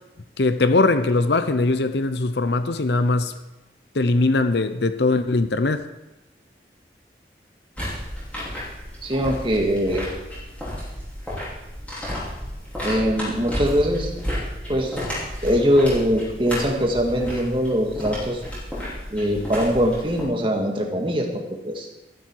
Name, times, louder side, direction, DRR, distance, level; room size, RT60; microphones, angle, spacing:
voice 1, 0.4-3.3 3.9-5.9, left 3 dB, 75° left, 0.7 m, -21 dB
sound 1, 7.7-20.2, equal, 10° left, 5.5 m, -32 dB
voice 2, 9.0-10.1 12.8-14.1 14.7-15.0 15.4-18.4 19.1-21.9, equal, 30° right, 1.9 m, -22 dB
13.5 x 12.5 x 4.7 m
head